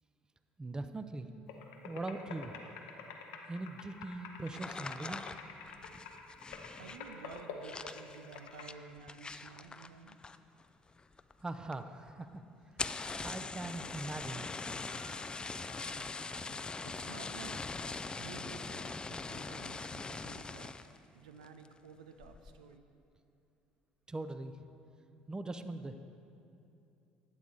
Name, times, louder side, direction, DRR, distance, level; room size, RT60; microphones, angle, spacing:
voice 1, 0.6-1.3 1.8-2.7 3.5-5.2 11.4-12.4 12.8-14.4 24.1-24.6 25.3-26.0, right 2 dB, 20° right, 9 dB, 0.6 m, -41 dB
sound 1, 1.5-8.7, left 5 dB, 80° left, 0.8 m, -48 dB
sound 2, 4.5-10.6 10.9-11.4 11.7-11.8 12.1-12.2 12.6-21.0 21.4-21.8 22.2-22.6, left 3 dB, 20° left, 0.4 m, -42 dB
voice 2, 6.8-10.2 16.8-17.6 18.2-22.8, right 6 dB, 85° right, 7 dB, 0.5 m, -52 dB
sound 3, 14.9-18.7, left 1 dB, 60° left, 1.2 m, -61 dB
12.0 x 8.3 x 4.0 m, 2.6 s
hypercardioid pair, 65°, 4 cm